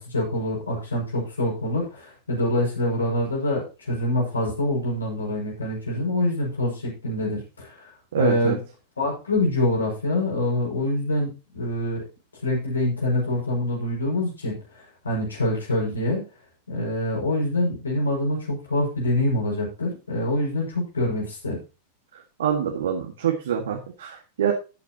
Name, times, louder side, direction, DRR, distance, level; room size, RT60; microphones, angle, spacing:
voice 1, 0.0-7.7 8.2-8.6 9.0-12.0 12.4-14.6 15.0-16.2 16.7-21.6, left 1 dB, 75° left, -2 dB, 6.1 m, -25 dB
voice 2, 8.1-8.6 22.4-24.5, right 8 dB, 60° right, 2 dB, 1.9 m, -25 dB
13.5 x 9.2 x 3.0 m, 0.31 s
figure-of-eight pair, 90°, 0 cm